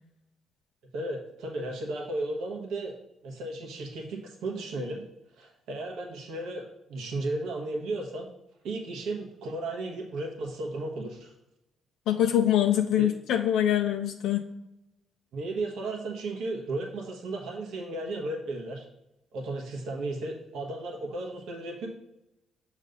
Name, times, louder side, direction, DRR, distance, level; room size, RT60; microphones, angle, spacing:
voice 1, 0.9-3.0 3.2-5.0 5.4-8.3 8.6-11.3 13.0-13.1 15.3-18.9 19.3-21.9, right 2 dB, 80° right, 0 dB, 1.3 m, -34 dB
voice 2, 12.1-14.4, left 11 dB, 85° left, 4 dB, 0.4 m, -24 dB
6.5 x 3.2 x 5.2 m, 0.88 s
cardioid pair, 90°, 0 cm